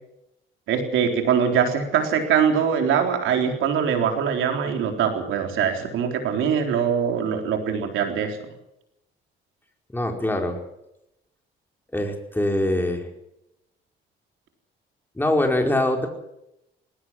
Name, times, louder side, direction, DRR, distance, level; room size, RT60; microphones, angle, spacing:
voice 1, 0.7-8.4, right 7 dB, 85° right, 4 dB, 3.9 m, -22 dB
voice 2, 9.9-10.6 11.9-13.1 15.1-16.1, left 1 dB, 10° left, 2 dB, 4.8 m, -23 dB
19.5 x 17.5 x 7.6 m, 0.84 s
cardioid pair, 90°, 20 cm